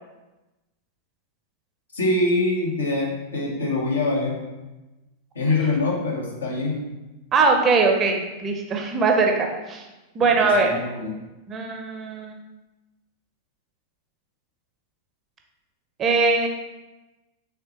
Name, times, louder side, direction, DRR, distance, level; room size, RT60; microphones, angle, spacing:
voice 1, 1.9-4.4 5.3-6.8 10.2-11.1, left 2 dB, 70° left, -1 dB, 0.8 m, -24 dB
voice 2, 7.3-9.8 10.1-10.7 11.5-12.3 16.0-16.5, right 4 dB, 25° right, 2 dB, 0.5 m, -21 dB
3.6 x 3.1 x 2.9 m, 1.1 s
figure-of-eight pair, 90°, 0 cm